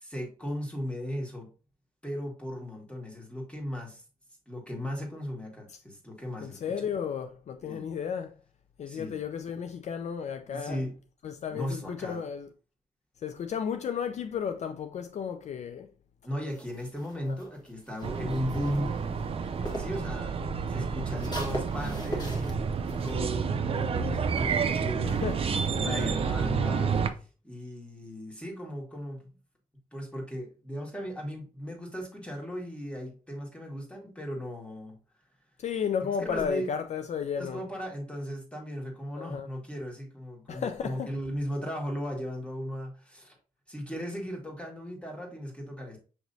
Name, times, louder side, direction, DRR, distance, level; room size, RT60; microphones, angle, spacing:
voice 1, 0.0-1.5 2.0-4.0 4.5-6.8 7.6-7.9 8.9-9.2 10.5-10.9 11.5-12.3 16.2-18.9 19.8-20.4 20.7-25.2 25.8-29.3 29.9-35.0 36.0-36.7 37.4-43.4 43.7-46.0, equal, 10° left, 1.6 m, -37 dB
voice 2, 6.4-8.4 8.8-10.9 11.2-12.5 13.2-15.9 17.2-17.4 25.0-25.5 25.8-26.3 35.6-37.6 39.2-39.5 40.5-41.1, left 7 dB, 60° left, 0.4 m, -33 dB
sound 1, 16.5-20.1 20.4-23.1, equal, 30° left, 1.4 m, -40 dB
sound 2, 18.0-27.1, right 6 dB, 45° right, 0.5 m, -30 dB
6.5 x 3.0 x 2.6 m
cardioid pair, 95°, 14 cm